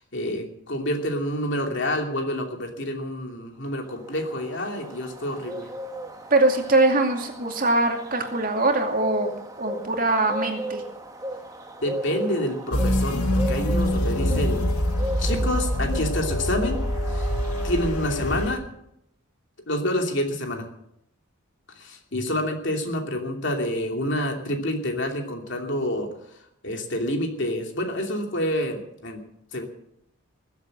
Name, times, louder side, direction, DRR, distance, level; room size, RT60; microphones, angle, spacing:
voice 1, 0.1-5.7 11.8-14.6 15.2-16.8 17.1-17.3 17.6-18.6 19.7-20.6 21.7-26.1 26.6-29.2 29.5-29.7, left 1 dB, 55° left, 3 dB, 2.8 m, -28 dB
Bird, 3.8-18.5, right 1 dB, 15° right, 1.4 m, -37 dB
voice 2, 6.3-9.3 9.6-10.8, right 2 dB, 40° right, 3 dB, 2.5 m, -22 dB
sound 1, 12.7-18.5, left 1 dB, 90° left, 2.0 m, -25 dB
21.0 x 8.0 x 7.8 m, 0.76 s
head